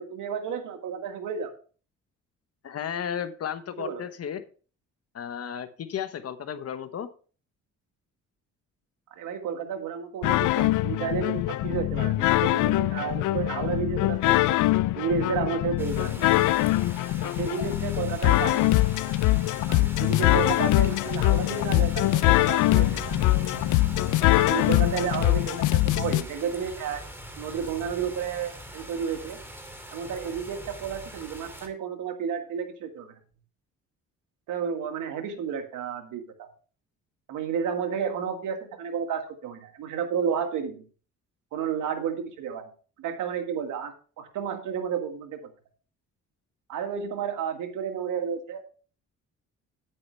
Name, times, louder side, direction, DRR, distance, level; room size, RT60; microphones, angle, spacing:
voice 1, 0.0-1.5 3.8-4.0 9.2-14.6 15.0-16.3 17.4-18.6 19.7-23.2 24.4-27.0 27.4-29.4 29.9-33.2 34.5-36.5 37.3-40.8 41.5-42.7 43.0-45.4 46.7-48.6, right 7 dB, 85° right, 5 dB, 1.9 m, -32 dB
voice 2, 2.6-4.4 5.1-7.1, left 8 dB, 55° left, 10 dB, 1.1 m, -34 dB
sound 1, 10.2-26.2, left 17 dB, 85° left, 0.5 m, -23 dB
sound 2, 15.8-31.7, right 1 dB, 10° right, 2.5 m, -42 dB
9.6 x 8.6 x 3.3 m, 0.39 s
cardioid pair, 90°, 30 cm